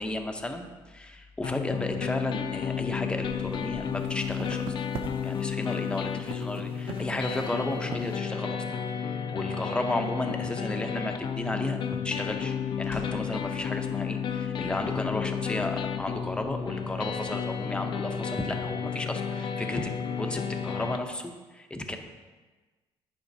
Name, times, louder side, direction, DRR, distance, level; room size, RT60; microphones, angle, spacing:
voice 1, 0.0-4.6 5.2-8.6 9.0-22.0, left 1 dB, 10° left, 4 dB, 0.7 m, -34 dB
sound 1, 1.4-21.0, left 7 dB, 50° left, 0.4 m, -32 dB
sound 2, 2.5-8.2, right 6 dB, 65° right, 0.6 m, -43 dB
sound 3, 12.8-13.5 14.5-15.1 15.7-15.8 17.1-17.9, left 3 dB, 85° left, 1.2 m, -46 dB
10.5 x 4.9 x 2.7 m, 1.3 s
cardioid pair, 105°, 10 cm